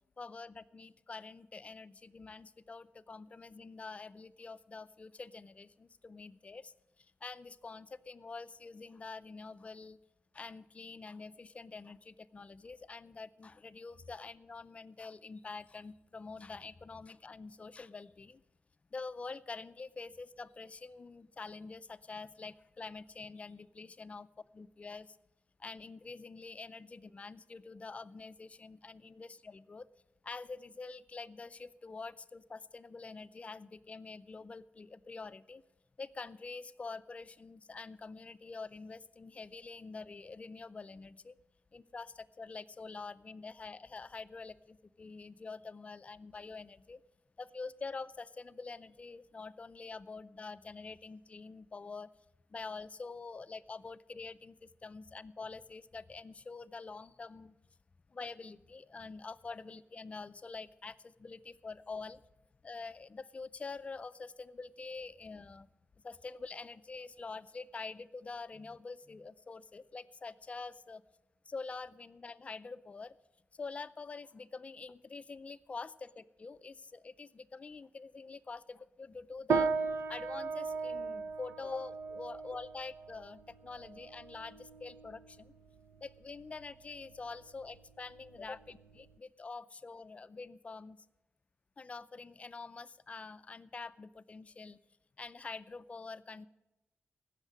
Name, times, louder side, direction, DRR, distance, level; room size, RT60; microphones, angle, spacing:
voice 1, 0.2-10.0 10.3-18.4 18.9-24.3 24.5-25.2 25.6-29.9 30.2-35.6 36.0-41.4 41.7-47.0 47.4-52.1 52.5-57.6 58.1-62.2 62.6-65.7 66.0-71.0 71.5-73.2 73.5-79.7 80.1-85.5 86.0-91.0 91.8-94.8 95.2-96.5, left 4 dB, 30° left, 15 dB, 0.4 m, -46 dB
sound 1, 79.5-89.1, right 4 dB, 90° right, 0.7 m, -38 dB
16.0 x 6.5 x 8.4 m, 0.96 s
wide cardioid pair, 140°, 4 cm